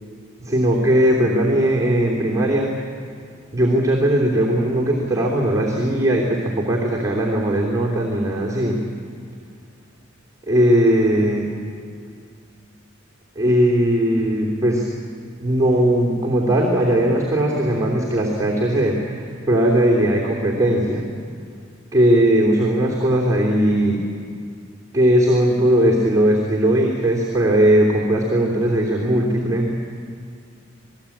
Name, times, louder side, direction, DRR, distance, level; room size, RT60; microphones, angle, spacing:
voice 1, 0.4-2.7 3.5-8.8 10.5-11.5 13.3-14.8 15.4-21.1 21.9-24.0 24.9-29.7, right 1 dB, 15° right, -2 dB, 3.1 m, -18 dB
28.0 x 19.5 x 8.6 m, 2.3 s
head